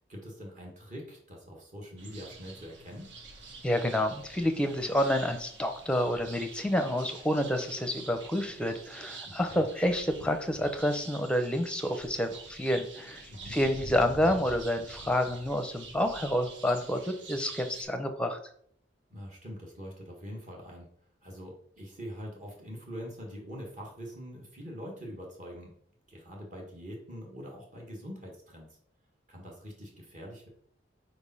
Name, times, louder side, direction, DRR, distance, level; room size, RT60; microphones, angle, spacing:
voice 1, 0.1-3.1 9.2-9.7 13.3-13.6 19.1-20.9 21.2-25.7 26.1-28.8 29.3-30.5, equal, 40° right, -1 dB, 1.6 m, -44 dB
sound 1, 2.0-17.8, right 3 dB, 75° right, 1.5 m, -47 dB
voice 2, 3.6-18.4, equal, 5° left, 6 dB, 0.6 m, -29 dB
5.2 x 4.5 x 5.5 m, 0.63 s
head